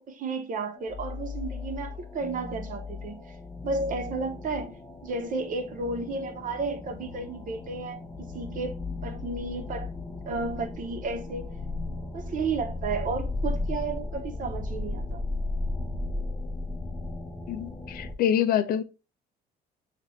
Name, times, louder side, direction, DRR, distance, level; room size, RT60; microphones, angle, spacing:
voice 1, 0.0-3.2 3.6-4.7 5.0-8.0 8.3-9.9 10.3-11.4 12.1-15.2, right 3 dB, 50° right, 0.9 m, -32 dB
sound 1, 0.8-18.1, left 2 dB, 15° left, 0.5 m, -35 dB
voice 2, 17.5-18.8, left 9 dB, 60° left, 0.5 m, -26 dB
6.2 x 2.5 x 3.0 m
cardioid pair, 110°, 17 cm